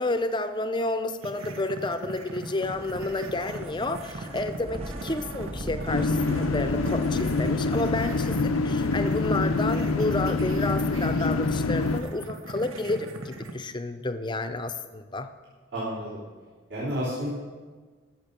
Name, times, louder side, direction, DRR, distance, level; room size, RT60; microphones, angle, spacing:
voice 1, 0.0-15.3, left 2 dB, 20° left, 9 dB, 0.6 m, -30 dB
sound 1, 1.2-13.5, right 2 dB, 85° right, 1.1 m, -40 dB
sound 2, 2.6-9.1, equal, 30° right, 1.0 m, -40 dB
sound 3, 5.9-12.0, left 3 dB, 85° left, 0.6 m, -26 dB
voice 2, 15.7-16.2 16.7-17.3, equal, 60° right, -10 dB, 3.3 m, -30 dB
14.0 x 6.7 x 6.7 m, 1.4 s
head